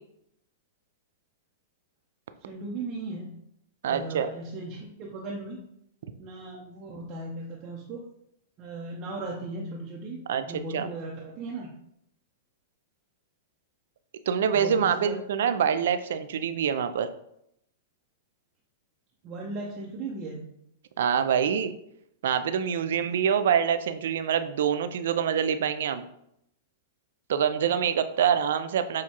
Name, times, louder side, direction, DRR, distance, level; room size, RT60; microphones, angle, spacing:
voice 1, 2.4-3.4 3.8-5.6 6.2-8.0 8.6-10.2 10.5-11.7 14.5-15.2 19.2-20.5 23.0-23.4, right 2 dB, 40° right, -3 dB, 0.7 m, -37 dB
voice 2, 3.8-4.3 10.3-10.4 10.7-10.9 14.3-17.1 21.0-21.7 22.2-26.0 27.3-29.0, right 8 dB, 70° right, 10 dB, 0.3 m, -25 dB
6.1 x 2.3 x 2.9 m, 0.77 s
hypercardioid pair, 115°, 0 cm